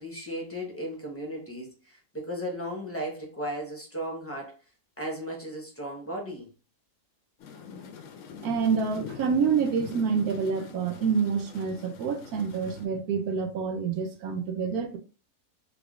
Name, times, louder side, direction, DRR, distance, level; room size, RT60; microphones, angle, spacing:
voice 1, 0.0-4.5 5.0-6.5, equal, 15° left, 0.6 m, -35 dB
sound 1, 7.4-12.9, left 6 dB, 65° left, 0.8 m, -44 dB
voice 2, 8.4-15.0, right 6 dB, 75° right, 1.1 m, -27 dB
3.5 x 3.4 x 2.4 m
omnidirectional pair, 1.7 m